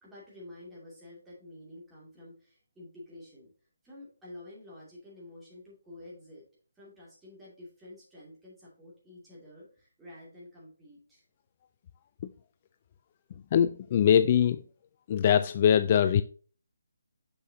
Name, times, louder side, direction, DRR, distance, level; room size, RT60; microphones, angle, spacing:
voice 1, 0.0-3.5 3.8-6.4 6.8-11.2, left 1 dB, 5° right, 2.5 m, -49 dB
voice 2, 13.5-14.6 15.1-16.2, left 9 dB, 30° left, 0.3 m, -22 dB
7.0 x 6.5 x 2.8 m
figure-of-eight pair, 150°, 0 cm